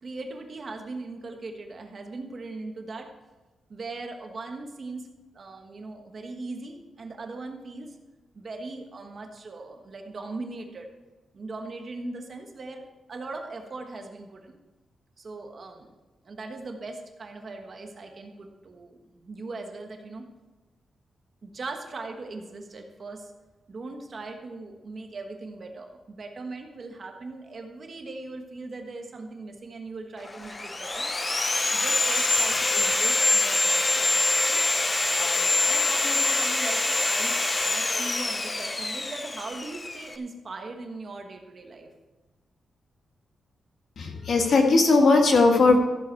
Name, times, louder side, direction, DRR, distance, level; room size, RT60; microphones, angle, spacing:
voice 1, 0.0-3.1 3.7-5.1 5.3-8.0 8.3-10.9 11.3-12.8 13.1-14.6 15.2-15.9 16.2-20.3 21.4-23.3 23.7-31.1 31.7-41.9, right 3 dB, 35° right, 4 dB, 1.3 m, -39 dB
Sawing, 30.3-40.1, left 2 dB, 20° left, 0.7 m, -25 dB
voice 2, 44.0-45.8, left 3 dB, 55° left, 3 dB, 1.6 m, -18 dB
14.5 x 7.9 x 4.6 m, 1.2 s
wide cardioid pair, 175°, 0 cm